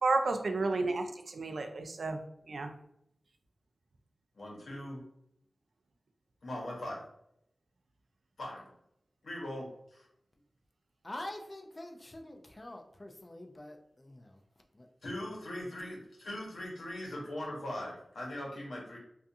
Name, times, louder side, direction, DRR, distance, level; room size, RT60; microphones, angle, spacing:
voice 1, 0.0-2.2 2.5-2.7, right 3 dB, 70° right, 6 dB, 0.3 m, -31 dB
voice 2, 4.3-5.0 6.4-7.0 8.4-8.6 9.2-10.1 15.0-19.0, left 1 dB, 80° left, -3 dB, 0.9 m, -40 dB
voice 3, 11.0-14.4 14.7-14.9, left 1 dB, 30° left, 3 dB, 0.3 m, -45 dB
2.4 x 2.3 x 2.6 m, 0.75 s
wide cardioid pair, 105°, 0 cm